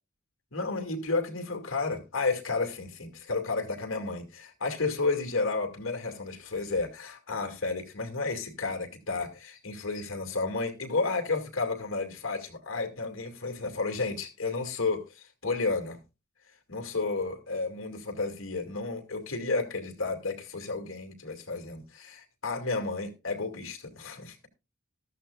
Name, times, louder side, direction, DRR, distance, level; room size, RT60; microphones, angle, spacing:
voice 1, 0.5-16.0 16.7-24.4, left 3 dB, 70° left, 2.3 m, -32 dB
14.0 x 13.0 x 2.4 m
head